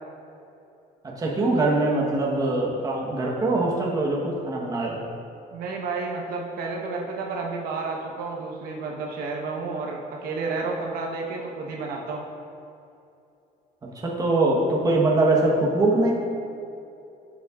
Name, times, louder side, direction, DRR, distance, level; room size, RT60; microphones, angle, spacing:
voice 1, 1.2-5.0 13.9-16.1, right 2 dB, 20° right, -3 dB, 1.1 m, -22 dB
voice 2, 5.5-12.3, right 3 dB, 70° right, 0 dB, 1.0 m, -31 dB
10.5 x 7.2 x 2.4 m, 2.7 s
cardioid pair, 140°, 16 cm